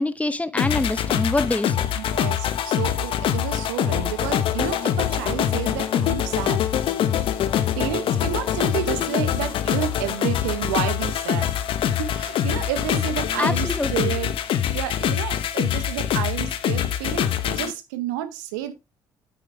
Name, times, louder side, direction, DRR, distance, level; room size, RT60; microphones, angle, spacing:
voice 1, 0.0-1.9 13.4-14.1, left 2 dB, 15° left, 1.1 m, -25 dB
sound 1, 0.6-17.7, left 10 dB, 65° left, 0.9 m, -24 dB
voice 2, 1.9-6.7 7.8-11.6 11.9-14.3 14.7-18.7, right 12 dB, 85° right, 0.9 m, -30 dB
8.4 x 7.9 x 3.3 m
hypercardioid pair, 50°, 10 cm